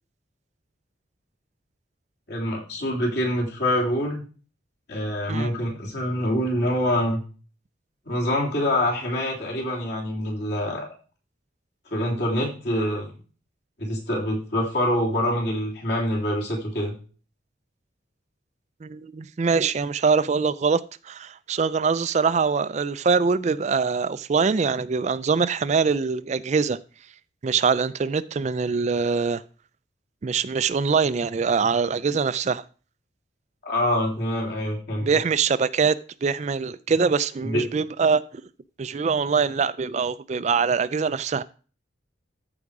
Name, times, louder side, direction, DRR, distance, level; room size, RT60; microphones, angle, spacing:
voice 1, 2.3-4.2 4.9-7.2 8.1-10.8 11.9-13.1 13.8-16.9 33.6-35.1 37.4-37.6, left 1 dB, 60° left, 3.4 m, -25 dB
voice 2, 18.8-26.8 27.4-29.4 30.2-32.6 35.0-38.2 38.8-41.4, right 5 dB, 35° right, 0.3 m, -23 dB
13.5 x 4.9 x 4.8 m
head